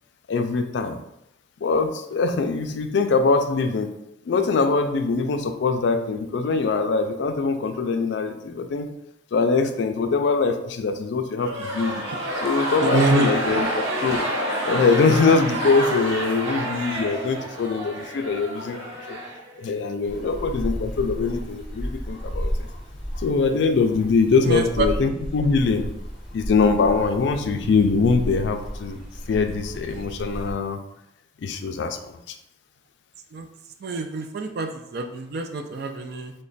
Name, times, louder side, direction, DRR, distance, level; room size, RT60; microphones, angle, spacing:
voice 1, 0.3-1.0 1.6-3.9 4.3-8.9 9.3-12.0 12.4-14.3 14.7-18.8 19.1-19.2 19.6-22.5 23.2-25.9 26.3-29.0 29.3-30.8 31.4-32.3, left 4 dB, 65° left, 7 dB, 0.3 m, -23 dB
sound 1, 11.4-19.8, right 1 dB, 90° right, 0.8 m, -28 dB
voice 2, 12.8-13.6 24.4-24.9 33.3-33.5 33.8-36.3, right 3 dB, 55° right, 6 dB, 0.3 m, -26 dB
sound 2, 20.0-30.5, equal, 5° right, 1.0 m, -33 dB
3.2 x 2.2 x 3.9 m, 0.82 s
head